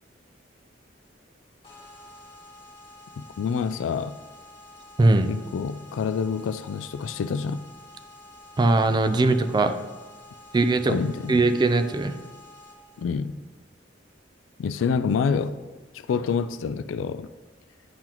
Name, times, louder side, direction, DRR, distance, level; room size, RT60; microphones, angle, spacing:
sound 1, 1.6-13.0, left 2 dB, 30° left, 1.7 m, -49 dB
voice 1, 3.4-4.2 5.3-7.6 10.9-11.4 13.0-13.4 14.6-15.6 15.9-17.3, left 6 dB, 85° left, 0.3 m, -27 dB
voice 2, 5.0-5.3 8.6-9.7 10.5-11.0 11.3-12.1, right 2 dB, 25° right, 0.3 m, -20 dB
10.0 x 3.9 x 3.0 m
head